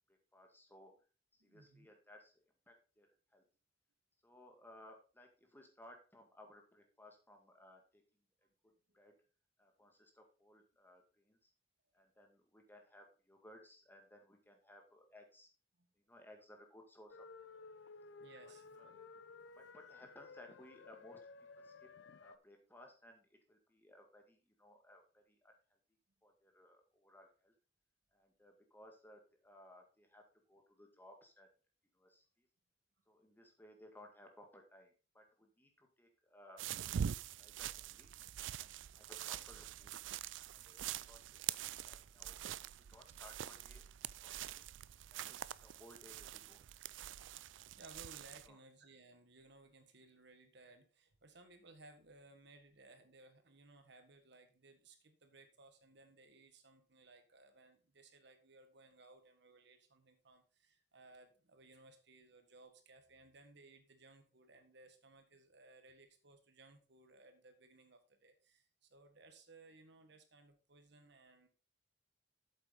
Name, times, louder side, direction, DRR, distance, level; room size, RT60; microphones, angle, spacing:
voice 1, 0.1-0.9 1.3-3.4 4.2-8.0 8.9-9.1 9.6-11.5 11.9-15.5 16.0-17.3 18.8-18.9 19.6-21.2 21.6-21.9 22.2-25.5 26.2-27.5 28.1-30.2 30.5-31.5 31.9-32.5 33.1-36.6 37.4-38.1 38.6-39.9 40.5-42.6 42.9-43.8 44.2-44.7 45.1-46.7 48.5-48.6, left 1 dB, 10° left, 3 dB, 2.0 m, -61 dB
voice 2, 1.4-1.9 8.9-9.0 15.8-15.9 18.2-18.8 38.8-38.9 47.7-71.5, right 2 dB, 65° right, 7 dB, 1.6 m, -62 dB
sound 1, 17.1-22.4, left 4 dB, 80° left, 0.5 m, -56 dB
sound 2, 36.6-48.5, right 9 dB, 85° right, 0.4 m, -45 dB
8.2 x 8.0 x 3.9 m, 0.33 s
head